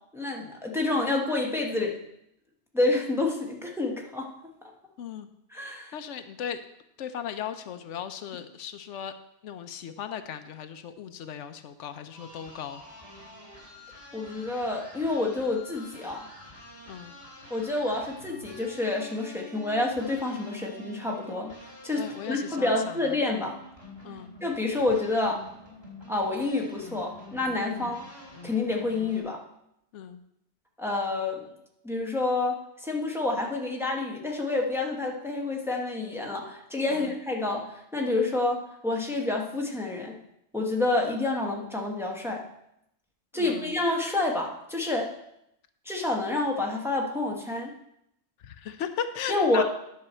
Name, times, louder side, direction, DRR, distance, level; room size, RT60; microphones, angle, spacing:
voice 1, 0.1-1.9 2.7-4.3 5.5-5.9 14.1-16.3 17.5-21.5 21.8-23.6 24.4-25.4 26.1-28.1 28.4-29.4 30.8-31.5 31.8-37.7 37.9-40.2 40.5-42.4 43.3-45.1 45.8-47.7 49.3-49.6, left 2 dB, ahead, 0 dB, 1.1 m, -28 dB
voice 2, 5.0-5.3 5.9-6.6 7.0-9.1 9.4-12.8 16.9-17.1 21.9-23.2 24.0-24.3 27.8-27.9 29.9-30.2 36.9-37.1 43.3-43.8 48.4-49.6, left 8 dB, 85° left, 10 dB, 1.0 m, -37 dB
sound 1, 12.1-29.2, left 1 dB, 20° right, 2.6 m, -47 dB
10.5 x 6.3 x 4.3 m, 0.79 s
omnidirectional pair, 1.2 m